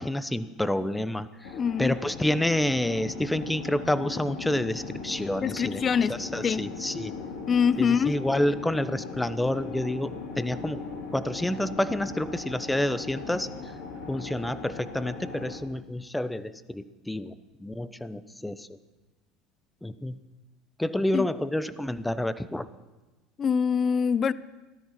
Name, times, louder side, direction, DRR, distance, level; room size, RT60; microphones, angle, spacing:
voice 1, 0.0-5.8 6.1-7.1 7.8-10.8 11.1-13.7 14.1-17.3 17.6-18.7 19.8-20.2 20.8-22.7, left 1 dB, 5° left, 14 dB, 0.8 m, -29 dB
sound 1, 1.4-15.6, left 4 dB, 70° left, 3.5 m, -39 dB
voice 2, 1.5-2.0 5.4-6.1 6.4-6.6 7.5-8.1 21.1-21.3 23.4-24.3, left 6 dB, 35° left, 19 dB, 0.5 m, -24 dB
16.5 x 13.0 x 5.8 m, 1.2 s
hypercardioid pair, 70°, 0 cm